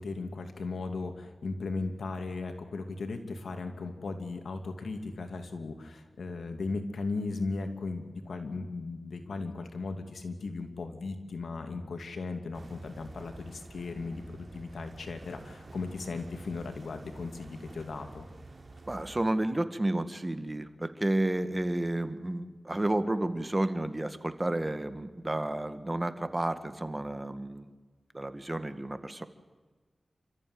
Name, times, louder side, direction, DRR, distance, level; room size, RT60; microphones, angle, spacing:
voice 1, 0.0-18.3, left 3 dB, 90° left, 6 dB, 2.7 m, -37 dB
sound 1, 12.5-19.3, right 2 dB, 55° right, 3.7 m, -50 dB
voice 2, 18.9-27.7 28.1-29.2, right 1 dB, 25° right, 10 dB, 2.0 m, -31 dB
29.0 x 14.5 x 9.7 m, 1.4 s
cardioid pair, 55°, 0 cm